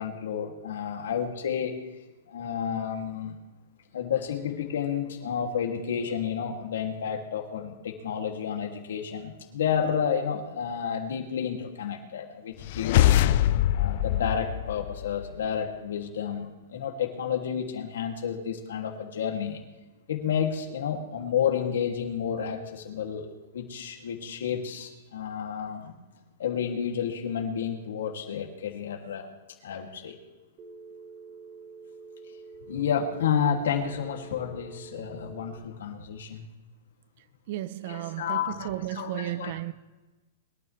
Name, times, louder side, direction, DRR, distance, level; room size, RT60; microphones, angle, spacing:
voice 1, 0.0-1.8 2.3-3.3 3.9-13.2 13.7-19.6 20.1-25.9 26.4-29.3 29.6-30.2 32.7-36.4 37.8-39.5, left 8 dB, 80° left, 2.7 m, -31 dB
sound 1, 12.6-15.4, left 12 dB, 45° left, 0.4 m, -24 dB
Telephone, 30.6-35.6, right 4 dB, 20° right, 1.6 m, -47 dB
voice 2, 37.5-39.7, right 14 dB, 45° right, 0.6 m, -34 dB
23.0 x 12.5 x 3.4 m
supercardioid pair, 170°, 0 cm